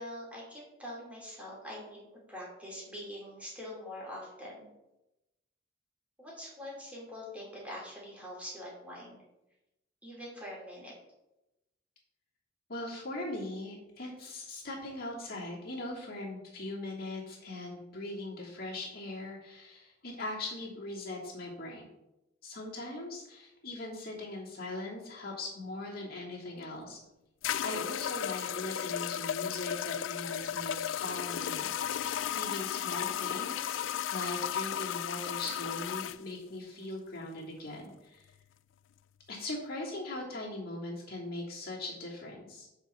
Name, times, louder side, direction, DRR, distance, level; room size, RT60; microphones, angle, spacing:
voice 1, 0.0-2.0 2.3-4.7 6.2-9.2 10.0-10.9, left 1 dB, 5° right, -4 dB, 2.9 m, -44 dB
voice 2, 12.7-21.9 22.4-27.0 27.6-33.8 34.1-38.3 39.3-42.7, left 2 dB, 55° left, -4 dB, 2.8 m, -40 dB
sound 1, 26.6-26.7 27.4-36.2, left 10 dB, 85° left, 0.3 m, -34 dB
7.2 x 4.5 x 7.0 m, 0.93 s
head